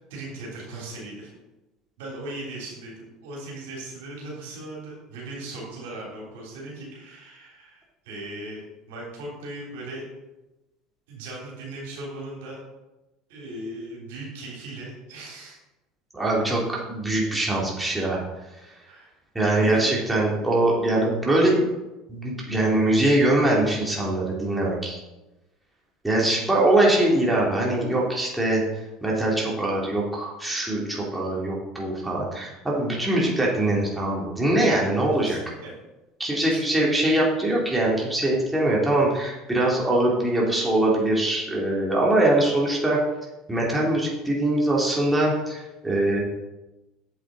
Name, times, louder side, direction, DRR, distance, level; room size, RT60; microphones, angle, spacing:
voice 1, 0.1-1.3 2.0-10.1 11.1-12.6 13.3-15.6 18.9-19.1 19.6-19.9 35.2-35.7 36.4-36.7, right 2 dB, 80° right, -3 dB, 3.3 m, -38 dB
voice 2, 16.1-18.2 18.6-18.7 19.3-21.6 22.1-25.0 26.0-28.6 29.0-35.4 36.2-43.0 43.5-46.2, right 1 dB, 10° right, -4 dB, 2.9 m, -22 dB
7.9 x 7.7 x 4.0 m, 1.0 s
supercardioid pair, 90°, 0 cm